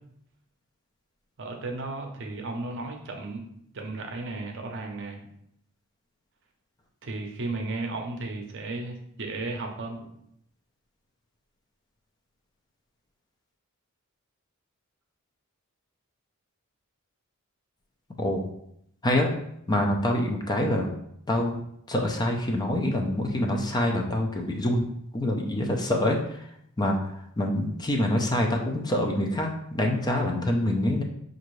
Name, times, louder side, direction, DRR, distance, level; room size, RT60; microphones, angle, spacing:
voice 1, 1.4-3.4 3.7-5.3 7.0-10.1, right 2 dB, 60° right, 3 dB, 0.7 m, -34 dB
voice 2, 19.0-19.3 19.7-20.9 21.3-21.6 21.9-26.4 26.8-31.0, left 1 dB, 20° left, 1 dB, 0.5 m, -26 dB
5.4 x 2.5 x 3.1 m, 0.73 s
head